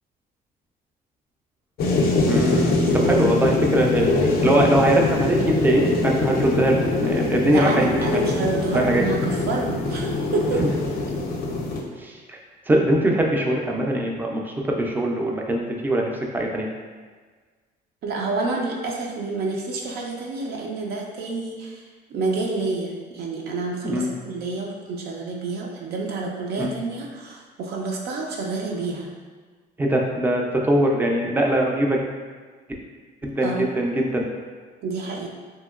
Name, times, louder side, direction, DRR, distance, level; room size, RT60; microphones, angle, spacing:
sound 1, 1.8-11.8, left 2 dB, 55° left, 0.5 m, -23 dB
voice 1, 2.3-8.2 8.7-9.0 10.6-10.7 12.0-12.4 12.7-16.7 23.8-24.1 26.6-26.7 29.8-32.0 33.2-34.3, right 1 dB, 10° right, 0 dB, 0.4 m, -22 dB
voice 2, 2.8-3.3 7.4-10.6 18.0-21.8 22.1-29.1 33.4-33.7 34.8-35.3, right 3 dB, 60° right, 0 dB, 0.6 m, -28 dB
2.9 x 2.8 x 2.3 m, 1.5 s
cardioid pair, 110°, 18 cm